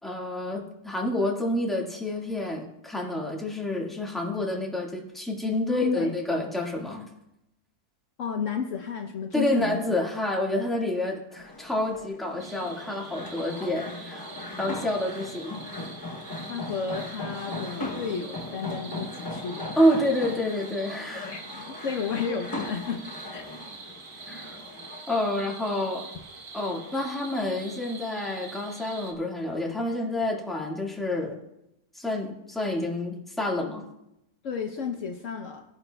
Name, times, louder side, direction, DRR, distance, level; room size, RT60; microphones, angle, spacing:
voice 1, 0.0-7.1 9.3-14.3 14.6-15.6 19.8-21.3 24.3-24.6 25.1-26.0 26.5-31.3 31.9-33.8, left 1 dB, ahead, -3 dB, 1.5 m, -28 dB
voice 2, 5.7-6.1 8.2-10.0 16.5-19.8 21.1-23.0 23.3-23.5 34.4-35.6, left 6 dB, 65° left, 4 dB, 1.0 m, -32 dB
sound 1, 11.3-25.0, left 2 dB, 25° left, 0.5 m, -39 dB
sound 2, 12.4-29.1, right 3 dB, 80° right, 1.6 m, -45 dB
17.5 x 10.0 x 2.2 m, 0.85 s
omnidirectional pair, 1.5 m